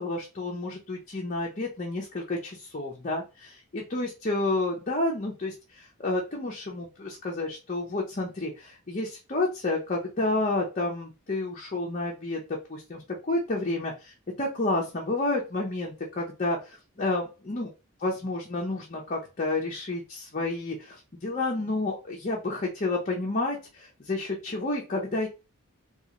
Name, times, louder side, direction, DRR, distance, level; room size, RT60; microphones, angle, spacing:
voice 1, 0.0-12.4 12.7-14.1 14.4-17.7 18.0-25.3, left 2 dB, 35° left, -1 dB, 0.6 m, -30 dB
3.8 x 2.4 x 2.9 m, 0.30 s
head